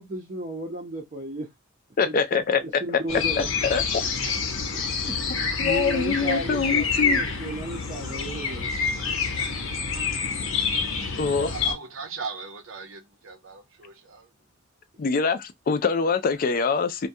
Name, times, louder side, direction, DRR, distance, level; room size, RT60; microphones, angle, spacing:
voice 1, 0.0-1.5 2.1-3.5 4.7-9.0, right 1 dB, 35° right, 0.6 m, -34 dB
voice 2, 2.0-3.0 3.4-4.1 5.6-7.2 11.2-11.5 15.0-17.1, left 5 dB, 45° left, 0.3 m, -24 dB
sound 1, 3.1-11.7, left 5 dB, 85° left, 0.8 m, -27 dB
voice 3, 11.5-14.3, right 5 dB, 75° right, 0.7 m, -38 dB
2.3 x 2.2 x 2.6 m
head